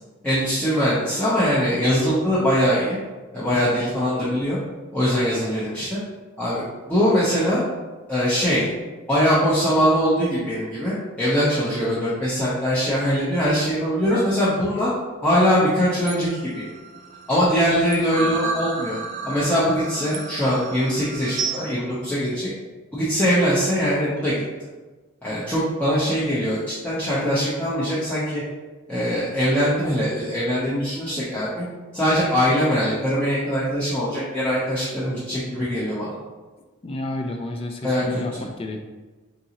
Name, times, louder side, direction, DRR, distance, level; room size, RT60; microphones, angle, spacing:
voice 1, 0.2-3.0 3.3-4.6 4.9-6.0 6.4-6.6 6.9-7.6 8.1-8.7 9.1-14.9 15.2-16.3 16.5-16.7 17.3-19.0 19.2-22.5 22.9-24.3 25.2-28.4 28.9-31.6 31.9-36.1 37.8-38.2, equal, 5° left, -11 dB, 0.7 m, -22 dB
sound 1, 16.0-21.7, right 4 dB, 40° right, 0.4 m, -32 dB
voice 2, 36.8-38.8, left 2 dB, 25° left, 3 dB, 0.3 m, -31 dB
3.8 x 3.8 x 2.9 m, 1.2 s
head